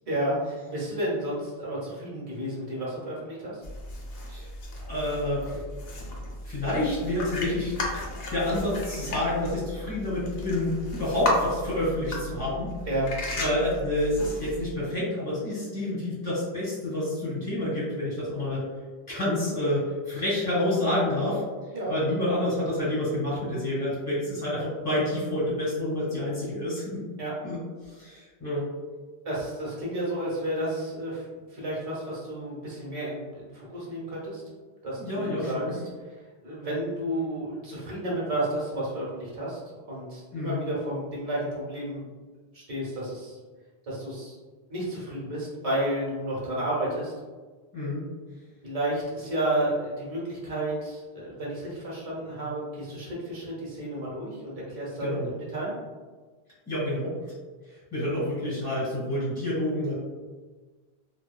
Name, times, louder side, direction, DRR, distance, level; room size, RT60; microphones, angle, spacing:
voice 1, 0.1-3.6 12.9-13.1 21.7-22.0 27.2-27.3 29.2-31.3 31.5-34.4 34.8-35.8 36.1-36.2 36.4-39.6 39.9-42.0 42.5-43.4 43.9-44.4 44.7-47.1 48.6-55.7, right 1 dB, 40° right, -6 dB, 0.9 m, -31 dB
sound 1, 3.6-14.7, left 1 dB, 70° left, 0.8 m, -35 dB
voice 2, 4.9-5.6 6.4-7.7 8.3-12.7 13.4-18.6 19.1-21.4 21.9-27.1 27.4-27.6 27.9-28.7 35.0-35.7 40.3-40.6 47.7-48.0 55.0-55.3 56.7-57.1 57.9-60.0, left 1 dB, 15° left, -9 dB, 1.3 m, -28 dB
2.9 x 2.2 x 2.3 m, 1.3 s
omnidirectional pair, 1.0 m